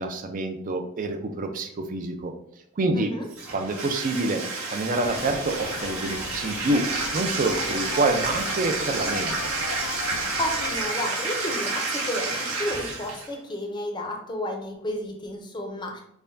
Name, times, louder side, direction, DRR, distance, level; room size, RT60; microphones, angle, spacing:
voice 1, 0.0-2.3 2.8-3.1 3.5-4.4 4.7-6.9 7.1-9.4, right 2 dB, 40° right, 5 dB, 0.4 m, -27 dB
voice 2, 2.9-3.3 10.1-16.0, left 1 dB, 20° left, 1 dB, 0.6 m, -32 dB
Bathtub (filling or washing), 3.3-13.3, right 3 dB, 75° right, 1.3 m, -30 dB
sound 1, 5.0-10.9, left 4 dB, 90° left, 0.4 m, -37 dB
5.5 x 2.2 x 2.6 m, 0.73 s
head